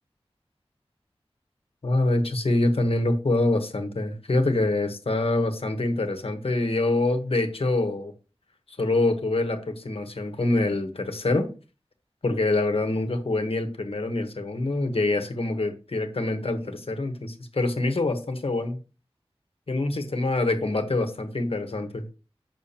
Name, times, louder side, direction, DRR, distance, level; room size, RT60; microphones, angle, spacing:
voice 1, 1.8-8.1 8.7-11.5 12.2-18.8 19.7-22.0, left 2 dB, 70° left, 6 dB, 1.2 m, -25 dB
8.4 x 6.2 x 2.9 m, 0.34 s
wide cardioid pair, 70°, 10 cm